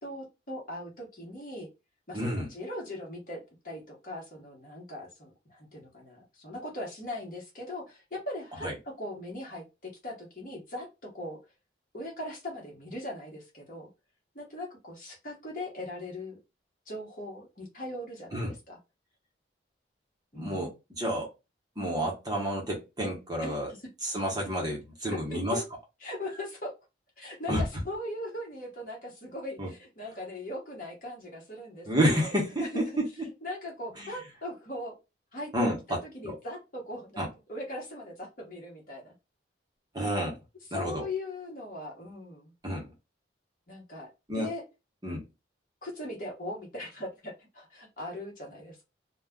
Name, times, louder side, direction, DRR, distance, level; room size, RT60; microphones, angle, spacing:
voice 1, 0.0-1.7 2.1-11.4 11.9-13.9 14.3-16.4 16.9-18.4 18.7-18.8 20.3-20.8 23.4-23.8 25.3-25.6 26.0-26.7 27.2-31.9 32.1-32.3 32.6-32.9 33.2-35.0 35.3-35.5 35.9-37.2 37.5-39.1 40.0-40.1 40.7-42.5 43.7-44.6 45.8-48.8, left 1 dB, 45° left, -1 dB, 1.0 m, -40 dB
voice 2, 2.1-2.5 8.6-8.7 18.3-18.5 20.3-21.3 21.8-23.7 24.0-25.6 27.5-27.6 29.6-29.7 31.9-33.3 34.0-34.1 35.5-36.0 36.2-36.3 37.2-37.3 39.9-40.4 40.7-41.0 42.6-42.9 44.3-44.5 45.0-45.2, equal, 20° right, -1 dB, 0.8 m, -30 dB
2.3 x 2.2 x 3.6 m, 0.26 s
head